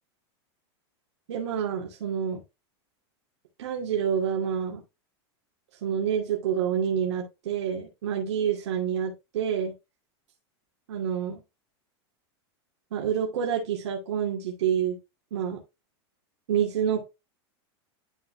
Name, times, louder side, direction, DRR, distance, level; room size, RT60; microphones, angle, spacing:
voice 1, 1.3-2.4 3.6-4.8 5.8-9.7 10.9-11.4 12.9-15.0 15.3-15.6 16.5-17.0, right 8 dB, 80° right, -2 dB, 2.7 m, -28 dB
12.0 x 4.2 x 3.3 m, 0.24 s
supercardioid pair, 140°, 14 cm